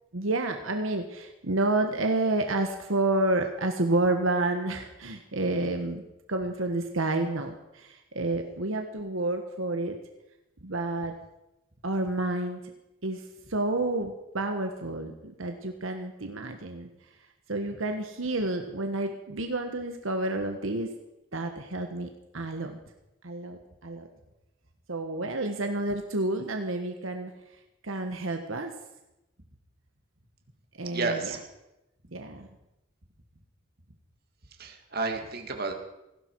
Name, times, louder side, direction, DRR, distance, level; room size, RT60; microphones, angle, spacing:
voice 1, 0.1-6.0 6.3-10.0 10.6-11.1 11.8-12.6 13.0-13.2 13.5-16.9 17.5-21.0 21.3-22.8 23.2-24.1 24.9-27.3 27.8-28.7 30.8-31.3 32.1-32.5, right 2 dB, 75° right, 5 dB, 1.4 m, -29 dB
voice 2, 30.8-31.4 34.6-35.7, right 3 dB, 45° right, 4 dB, 2.0 m, -31 dB
18.5 x 15.5 x 4.7 m, 0.92 s
head